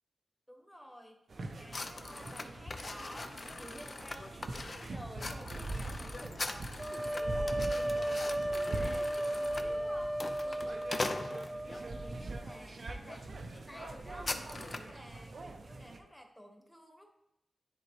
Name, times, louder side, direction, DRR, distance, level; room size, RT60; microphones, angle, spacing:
voice 1, 0.5-1.2 1.5-17.1, equal, 5° left, 3 dB, 1.2 m, -52 dB
sound 1, 1.3-16.0, right 2 dB, 65° right, 0.6 m, -44 dB
sound 2, 1.7-11.8 12.5-12.7 13.0-13.2 13.5-15.0, left 3 dB, 45° left, 0.5 m, -42 dB
sound 3, 6.8-12.7, right 1 dB, 20° right, 0.4 m, -35 dB
10.0 x 3.8 x 3.1 m, 0.87 s
cardioid pair, 70°, 0 cm